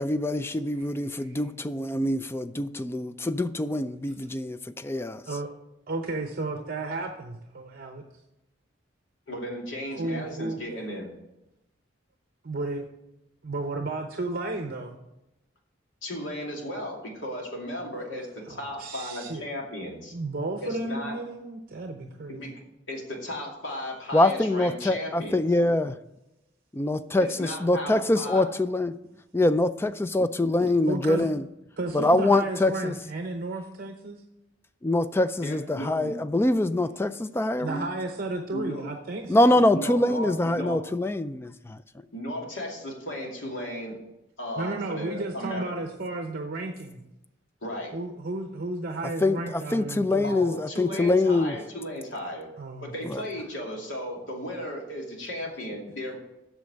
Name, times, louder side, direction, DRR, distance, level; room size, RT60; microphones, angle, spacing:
voice 1, 0.0-5.2 24.1-26.0 26.7-28.9 29.3-31.4 31.9-32.9 34.8-37.9 39.3-41.8 49.2-51.6 53.0-53.2, left 2 dB, 15° left, 0.3 m, -24 dB
voice 2, 5.9-8.0 9.9-10.6 12.4-12.9 13.4-15.0 18.5-19.4 20.1-22.4 30.8-31.3 31.8-34.2 37.6-40.0 44.6-47.0 47.9-50.4 52.6-53.1, right 2 dB, 50° right, 0.8 m, -33 dB
voice 3, 9.3-11.1 16.0-20.1 20.6-21.2 22.3-22.6 22.9-25.4 27.2-28.5 35.4-36.1 38.5-38.8 39.7-40.8 42.1-44.0 44.4-45.7 47.6-47.9 50.2-52.5 52.8-56.2, equal, 80° left, 2.6 m, -35 dB
8.4 x 6.3 x 7.9 m
head